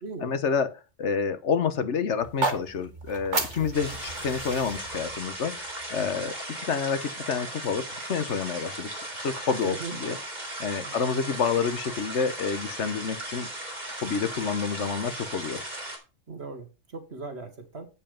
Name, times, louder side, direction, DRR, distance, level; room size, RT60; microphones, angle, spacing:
voice 1, 0.2-8.9 9.2-10.2 10.6-13.5 14.0-15.6, left 6 dB, 75° left, 11 dB, 1.4 m, -29 dB
sound 1, 2.2-6.3, right 3 dB, 85° right, 2.3 m, -34 dB
sound 2, 3.7-16.0, right 1 dB, 35° right, 4.2 m, -37 dB
voice 2, 6.0-6.3 9.7-10.2 10.8-11.0 16.3-17.9, right 3 dB, 65° right, 7 dB, 1.9 m, -39 dB
8.3 x 7.2 x 5.1 m, 0.30 s
omnidirectional pair, 1.2 m